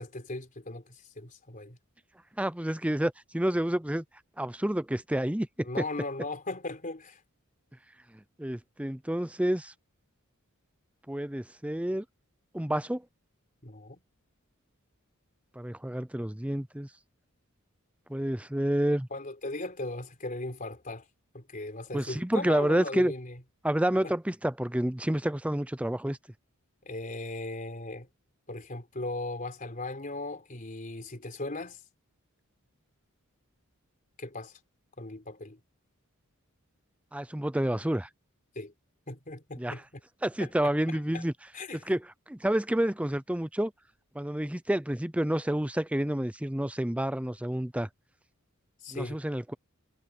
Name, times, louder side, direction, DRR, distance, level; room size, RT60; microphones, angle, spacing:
voice 1, 0.0-1.8 5.6-7.2 13.6-14.0 19.1-21.1 21.3-23.4 24.0-24.1 26.8-28.1 28.5-31.8 34.2-34.6 35.0-35.6 38.6-38.7 39.1-39.8 40.4-40.7 41.1-41.2 41.5-41.9 48.8-49.2, left 2 dB, 40° left, 3.9 m, -38 dB
voice 2, 2.4-4.0 4.4-5.8 8.4-9.7 11.1-12.0 12.5-13.0 15.6-16.9 18.1-19.1 21.9-23.1 23.6-26.2 37.1-38.1 39.6-39.7 40.2-41.3 41.7-43.7 44.1-47.9 48.9-49.5, right 1 dB, 5° right, 0.6 m, -29 dB
head